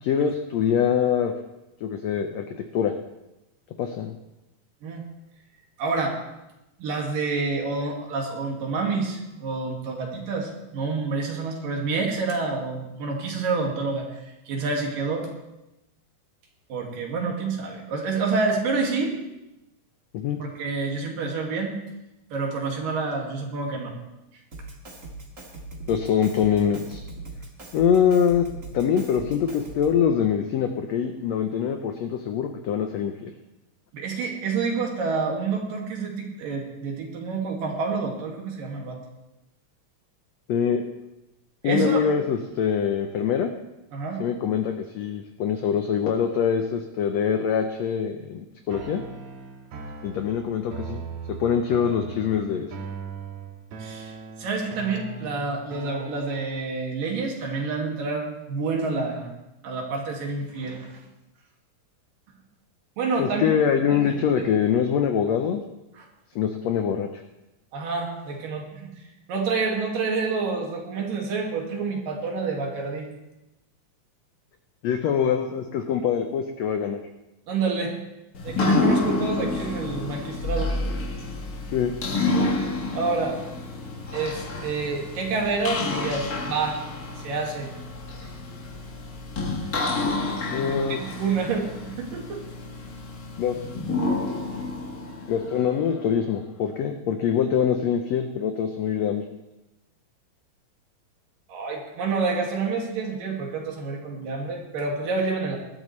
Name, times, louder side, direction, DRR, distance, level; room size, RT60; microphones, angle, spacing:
voice 1, 0.0-1.3 1.8-2.4 2.7-2.9 3.8-4.2 20.1-20.4 25.9-27.0 27.7-28.5 28.7-33.3 40.5-40.8 41.6-43.5 44.2-49.0 50.0-51.0 51.4-52.7 63.2-65.6 66.3-67.2 74.8-77.0 81.7-81.9 90.5-91.0 93.4-93.6 95.3-99.2, left 8 dB, 80° left, 5 dB, 1.5 m, -24 dB
voice 2, 5.8-6.2 6.8-14.1 14.5-15.3 16.7-19.1 20.4-21.8 22.3-23.9 33.9-39.0 41.6-42.0 43.9-44.2 53.8-59.3 59.6-60.9 63.0-63.6 63.9-64.5 66.0-66.1 67.7-68.9 69.3-73.1 77.5-78.0 78.4-80.7 82.9-83.4 84.1-86.8 87.2-87.7 89.9-92.4 101.5-105.6, right 4 dB, 75° right, 0 dB, 3.7 m, -28 dB
Drum kit, 24.5-30.1, right 2 dB, 30° right, 1.6 m, -40 dB
sound 1, 48.7-56.7, right 5 dB, 60° right, 2.5 m, -39 dB
sound 2, 78.3-96.2, left 3 dB, 60° left, 0.9 m, -29 dB
20.0 x 12.5 x 3.2 m, 0.93 s
omnidirectional pair, 4.0 m